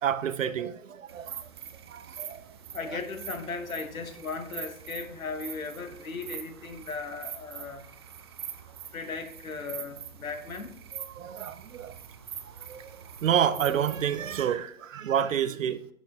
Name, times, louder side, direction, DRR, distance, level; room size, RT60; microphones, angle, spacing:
voice 1, 0.0-1.5 1.9-2.4 2.9-3.0 10.9-11.9 12.6-12.9 13.2-15.9, right 9 dB, 70° right, 0.7 m, -29 dB
sound 1, 1.1-14.4, right 8 dB, 20° right, 0.3 m, -44 dB
voice 2, 2.7-7.8 8.9-10.7, left 4 dB, 80° left, 1.1 m, -37 dB
11.0 x 5.1 x 3.5 m
figure-of-eight pair, 115°, 41 cm